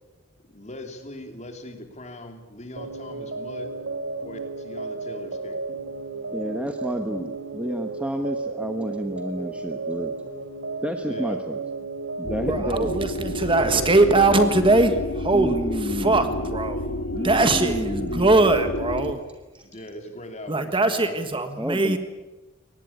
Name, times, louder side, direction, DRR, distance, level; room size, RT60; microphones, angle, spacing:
voice 1, 0.5-3.7 4.2-5.7 11.0-11.4 19.6-21.3, left 1 dB, 35° left, 6 dB, 2.9 m, -40 dB
sound 1, 2.8-14.5, right 3 dB, 70° right, 3.0 m, -33 dB
voice 2, 6.3-10.1 10.8-11.6 12.2-12.9 15.3-16.3 17.1-18.3 19.5-19.6 21.6-22.0, equal, 5° right, 6 dB, 1.1 m, -30 dB
sound 2, 12.2-19.1, left 1 dB, 65° left, 2.1 m, -30 dB
voice 3, 12.5-16.8 17.2-19.2 20.5-22.0, right 2 dB, 25° right, 8 dB, 1.5 m, -21 dB
23.0 x 19.0 x 9.7 m, 1.1 s
head